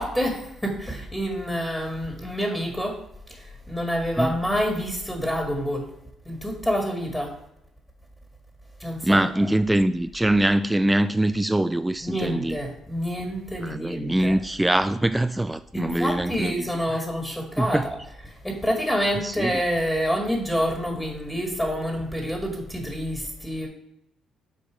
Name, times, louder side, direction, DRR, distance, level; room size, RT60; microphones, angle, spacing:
voice 1, 0.0-3.0 3.3-5.9 6.2-7.4 8.8-9.5 12.0-14.4 15.7-18.0 18.3-23.7, equal, 10° left, 1.6 m, -27 dB
voice 2, 9.0-12.6 13.6-16.7 17.6-17.8 19.2-19.5, right 1 dB, 10° right, 0.3 m, -23 dB
7.8 x 2.7 x 4.9 m
hypercardioid pair, 55°, 0 cm